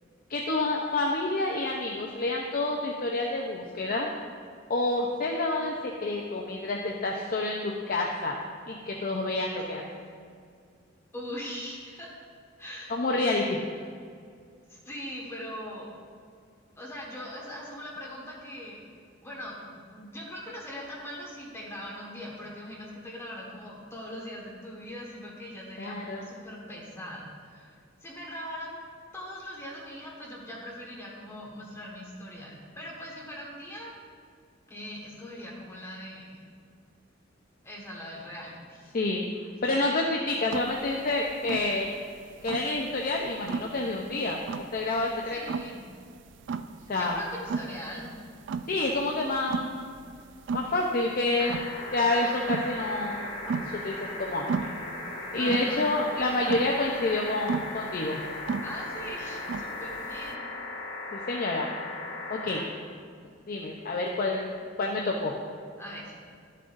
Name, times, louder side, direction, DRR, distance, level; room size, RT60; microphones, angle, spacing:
voice 1, 0.3-4.1 4.7-8.4 8.7-9.8 12.9-13.6 25.8-26.3 38.9-39.2 39.6-41.9 42.4-45.4 46.9-47.2 48.7-49.9 50.5-54.7 55.3-58.2 61.1-61.7 62.3-62.6 63.5-65.3, left 2 dB, 50° left, 0 dB, 0.6 m, -28 dB
voice 2, 11.1-12.1 12.6-12.9 14.7-15.9 16.8-18.8 19.2-28.8 29.1-33.9 34.7-36.4 37.6-38.8 45.3-45.8 47.0-48.1 55.4-55.9 58.6-60.4 65.8-66.1, equal, 15° left, -4 dB, 1.5 m, -41 dB
sound 1, 40.5-60.3, right 5 dB, 65° right, 0.3 m, -35 dB
sound 2, 51.4-62.6 64.1-64.2, left 2 dB, 75° left, 1.6 m, -37 dB
12.0 x 7.5 x 2.6 m, 2.2 s
head